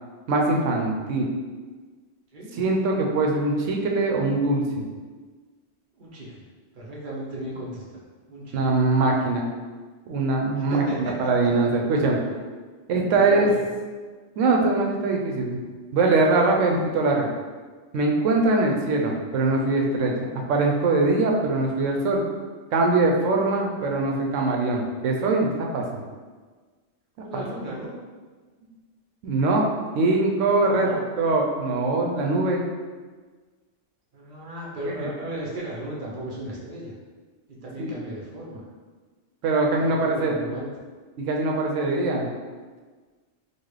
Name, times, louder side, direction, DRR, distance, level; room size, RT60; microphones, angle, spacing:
voice 1, 0.3-1.3 2.5-4.9 8.5-9.5 10.1-12.2 12.9-13.5 14.4-15.6 15.9-17.3 17.9-22.2 22.7-26.0 27.3-27.4 29.2-29.7 29.9-30.9 31.2-32.6 34.8-35.1 37.8-37.9 39.4-40.4 41.2-42.3, right 3 dB, 85° right, 0 dB, 1.0 m, -22 dB
voice 2, 6.0-6.4 6.7-8.6 10.5-11.1 13.1-13.6 27.2-28.0 30.7-31.0 34.1-37.0 37.5-38.6 39.8-40.7, right 1 dB, 45° right, -5 dB, 0.9 m, -36 dB
4.0 x 2.4 x 3.1 m, 1.4 s
omnidirectional pair, 1.3 m